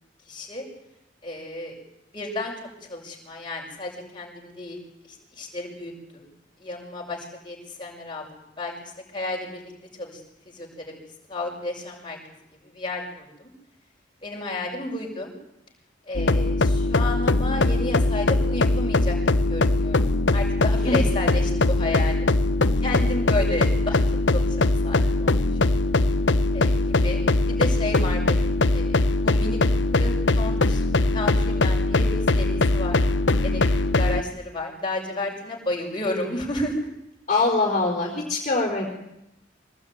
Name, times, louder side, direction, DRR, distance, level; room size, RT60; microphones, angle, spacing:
voice 1, 0.3-0.6 1.2-1.7 2.1-2.5 2.9-4.8 5.3-6.2 6.6-7.2 7.4-8.3 8.6-8.7 9.1-9.7 10.0-10.2 10.5-10.9 11.3-12.2 12.7-13.5 14.2-15.3 16.1-19.2 19.5-22.2 22.8-24.0 24.3-25.7 26.5-30.8 31.1-33.0 33.4-36.8, left 2 dB, 25° left, -1 dB, 6.3 m, -32 dB
sound 1, 16.1-34.2, left 2 dB, 80° left, 1.1 m, -21 dB
voice 2, 37.3-38.9, left 3 dB, 40° left, -1 dB, 4.8 m, -23 dB
24.0 x 19.0 x 9.6 m, 0.85 s
head